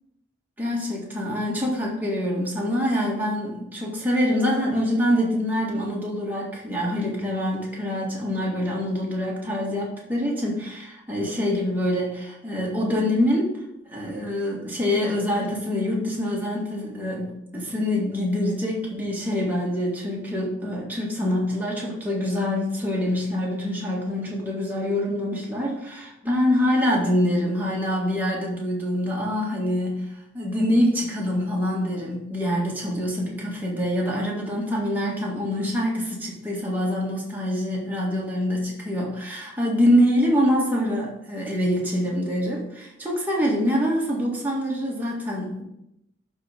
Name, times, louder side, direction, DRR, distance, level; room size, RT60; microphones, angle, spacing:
voice 1, 0.6-13.5 13.9-45.6, equal, 10° right, -4 dB, 1.8 m, -25 dB
11.0 x 3.8 x 5.1 m, 0.84 s
head